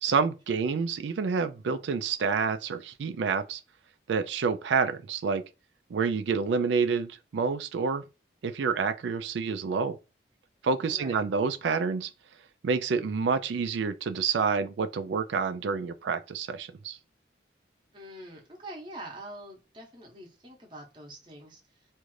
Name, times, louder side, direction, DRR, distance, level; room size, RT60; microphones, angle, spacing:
voice 1, 0.0-3.6 4.1-5.4 5.9-8.0 8.4-10.0 10.6-12.1 12.6-17.0, right 5 dB, 80° right, 0.4 m, -28 dB
voice 2, 10.9-11.2 17.9-21.6, right 1 dB, 25° right, 0.8 m, -44 dB
2.6 x 2.4 x 3.1 m
head